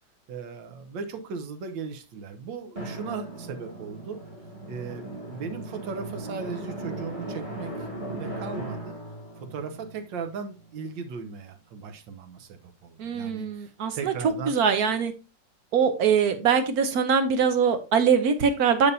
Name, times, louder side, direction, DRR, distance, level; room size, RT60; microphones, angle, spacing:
voice 1, 0.3-4.2 4.7-7.7 8.1-9.0 9.4-14.6, right 5 dB, 90° right, 7 dB, 1.6 m, -37 dB
Drum, 2.7-11.0, right 2 dB, 25° right, 2.7 m, -38 dB
voice 2, 13.0-14.1 14.5-15.1 15.7-18.9, right 6 dB, 65° right, 9 dB, 1.1 m, -22 dB
7.0 x 6.7 x 2.7 m, 0.29 s
omnidirectional pair, 2.0 m